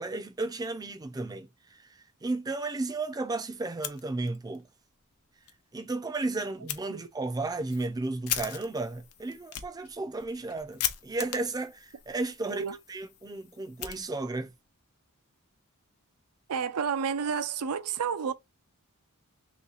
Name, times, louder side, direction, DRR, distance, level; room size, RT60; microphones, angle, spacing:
voice 1, 0.0-1.9 2.2-4.7 5.7-14.5, right 2 dB, 15° right, 0.4 m, -34 dB
Fire, 3.7-4.6 4.9-5.0 5.4-5.5 6.7-6.8 7.4-14.5, left 11 dB, 80° left, 0.7 m, -39 dB
voice 2, 16.5-18.3, right 6 dB, 80° right, 0.5 m, -30 dB
3.1 x 3.0 x 3.9 m
head